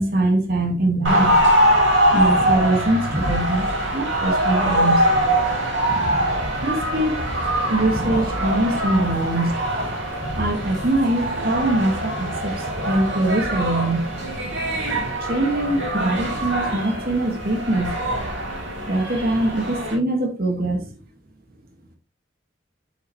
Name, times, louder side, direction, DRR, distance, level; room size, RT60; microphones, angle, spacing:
voice 1, 0.0-1.8 2.1-3.7 3.9-5.0 6.6-7.2 7.7-9.6 10.4-14.1 15.3-18.0 18.9-20.9, right 1 dB, 50° right, 2.0 m, -23 dB
sound 1, 1.0-19.9, right 1 dB, 70° right, 3.4 m, -23 dB
7.9 x 6.0 x 3.2 m
head